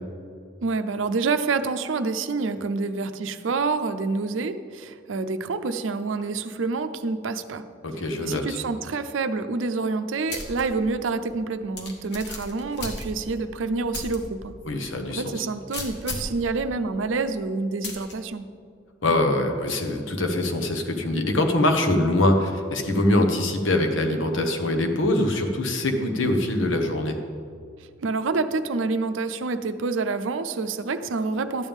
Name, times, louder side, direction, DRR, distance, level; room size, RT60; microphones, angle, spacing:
voice 1, 0.6-7.6 8.2-14.5 15.1-18.5 28.0-31.7, right 4 dB, 80° right, 10 dB, 0.5 m, -27 dB
voice 2, 7.8-8.6 14.7-15.2 19.0-27.2, left 1 dB, 90° left, 4 dB, 1.1 m, -23 dB
sound 1, 10.3-10.6 11.0-11.1 11.8-13.4 13.9-14.2 14.6-14.7 15.7-16.4 17.8-18.1, left 2 dB, 60° left, 1.4 m, -34 dB
12.0 x 8.8 x 3.6 m, 2.2 s
head